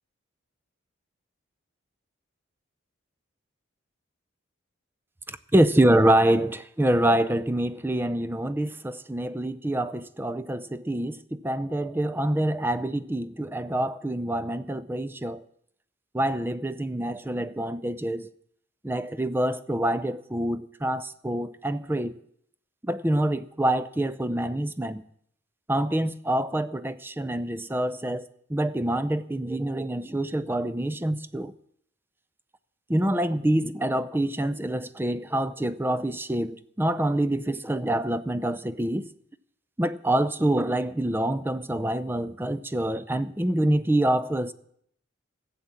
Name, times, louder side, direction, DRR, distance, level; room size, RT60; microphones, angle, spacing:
voice 1, 5.3-15.4 16.1-18.3 18.8-22.1 22.8-25.0 25.7-31.5 32.9-39.1 39.8-44.5, right 1 dB, 10° right, 0.4 m, -26 dB
15.5 x 7.5 x 8.4 m
head